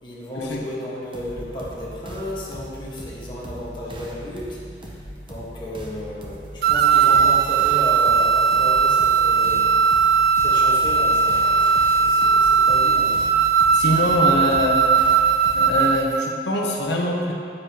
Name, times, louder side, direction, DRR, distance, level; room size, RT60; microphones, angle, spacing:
voice 1, 0.0-9.7 10.0-13.1, left 1 dB, 25° left, -6 dB, 1.6 m, -34 dB
sound 1, 1.1-15.9, equal, 30° right, 0.8 m, -39 dB
sound 2, 6.6-16.2, right 6 dB, 60° right, 0.4 m, -18 dB
voice 2, 13.7-14.8 15.5-17.3, left 1 dB, 75° left, -2 dB, 1.0 m, -23 dB
9.6 x 8.6 x 3.1 m, 2.5 s
head